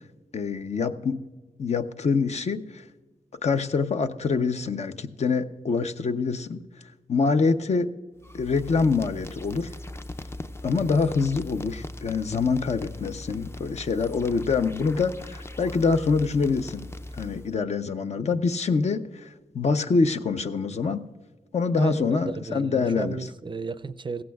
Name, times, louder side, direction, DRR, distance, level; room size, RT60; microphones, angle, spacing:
voice 1, 0.3-1.2 1.6-2.9 3.4-6.6 7.1-7.9 8.3-9.7 10.6-16.9 17.1-21.0 21.5-23.2, left 4 dB, 55° left, 8 dB, 0.7 m, -25 dB
sound 1, 8.2-17.6, left 1 dB, 20° left, 0.5 m, -40 dB
voice 2, 21.8-24.2, right 4 dB, 35° right, 13 dB, 0.5 m, -33 dB
16.0 x 14.5 x 2.3 m, 1.2 s
cardioid pair, 75°, 14 cm